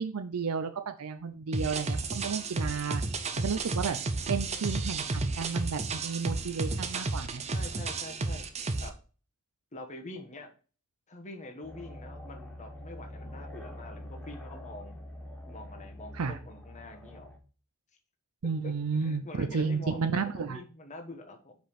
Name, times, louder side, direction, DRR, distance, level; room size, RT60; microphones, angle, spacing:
voice 1, 0.0-3.0 3.4-4.0 4.3-7.4 16.1-16.4 18.4-20.6, right 5 dB, 85° right, 9 dB, 0.6 m, -32 dB
sound 1, 1.5-8.9, right 3 dB, 30° right, 0.7 m, -32 dB
voice 2, 7.5-8.4 8.8-8.9 9.7-10.5 11.1-14.9 15.5-17.3 18.6-21.5, left 2 dB, 35° left, 3 dB, 1.3 m, -45 dB
sound 2, 11.6-17.4, left 1 dB, 10° left, 1.2 m, -45 dB
5.2 x 5.2 x 5.6 m, 0.37 s
head